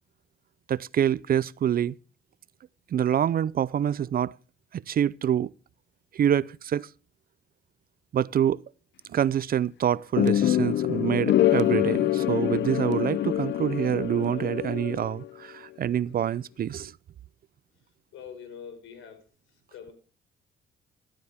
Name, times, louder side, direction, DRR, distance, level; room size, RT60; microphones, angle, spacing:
voice 1, 0.7-1.9 2.9-4.4 4.7-5.5 6.1-6.9 8.1-8.6 9.1-16.9, right 10 dB, 50° right, 0.5 m, -26 dB
sound 1, 10.2-15.3, left 12 dB, 60° left, 0.7 m, -25 dB
voice 2, 18.1-19.2 19.7-19.9, left 7 dB, 85° left, 5.0 m, -43 dB
14.0 x 12.5 x 3.5 m
cardioid pair, 90°, 20 cm